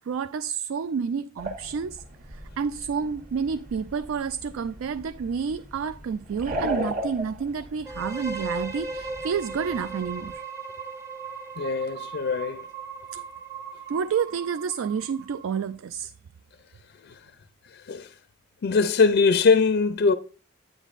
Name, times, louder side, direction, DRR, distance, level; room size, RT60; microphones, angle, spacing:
voice 1, 0.0-10.4 13.9-16.1, right 6 dB, 70° right, 0.3 m, -29 dB
sound 1, 1.4-10.4, right 1 dB, 40° right, 1.3 m, -37 dB
sound 2, 7.9-15.7, right 4 dB, 15° right, 0.8 m, -37 dB
voice 2, 11.6-12.6 17.0-17.2 17.7-18.1 18.6-20.1, left 4 dB, 55° left, 0.4 m, -22 dB
10.0 x 8.9 x 2.5 m
head